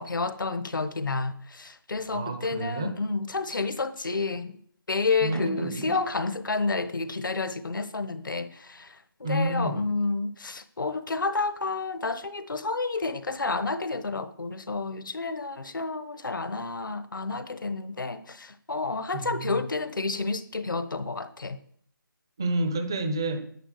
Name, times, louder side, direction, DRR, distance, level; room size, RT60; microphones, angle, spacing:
voice 1, 0.0-4.5 4.9-21.6, left 3 dB, 60° left, 1.2 m, -30 dB
voice 2, 2.1-3.0 5.2-6.0 9.2-9.9 19.1-19.6 22.4-23.5, right 1 dB, 10° right, 0.5 m, -29 dB
10.0 x 9.7 x 6.4 m
figure-of-eight pair, 175°, 12 cm